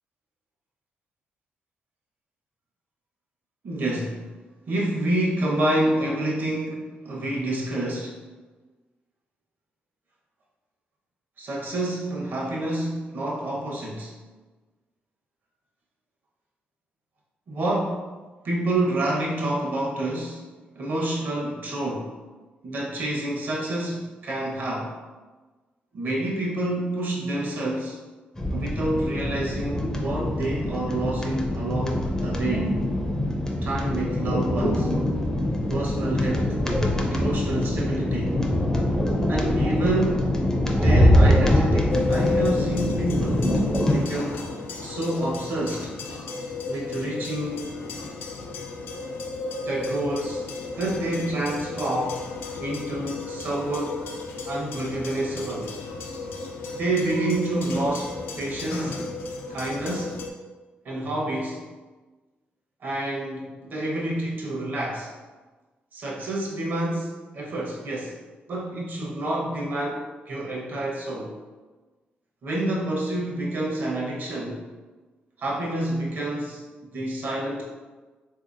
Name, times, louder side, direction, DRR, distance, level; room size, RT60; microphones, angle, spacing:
voice 1, 3.6-4.3 4.7-8.2 11.4-14.2 17.5-18.0 18.4-20.5 20.7-22.1 22.6-25.0 25.9-28.0 28.5-32.7 33.6-34.9 35.7-36.6 37.1-38.4 39.3-40.4 40.7-44.4 44.8-45.9 46.7-47.7 49.6-50.5 50.7-52.3 52.6-54.1 54.5-55.7 56.7-59.0 59.5-60.2 60.8-61.7 62.8-65.1 65.9-68.2 68.5-71.3 72.4-74.7 75.4-76.6 76.9-77.6, right 1 dB, 60° right, -3 dB, 0.9 m, -28 dB
sound 1, 28.4-44.0, left 1 dB, 15° left, 0.5 m, -23 dB
sound 2, 41.9-60.3, left 3 dB, 80° left, 0.4 m, -34 dB
3.7 x 2.8 x 2.5 m, 1.3 s
cardioid pair, 100°, 4 cm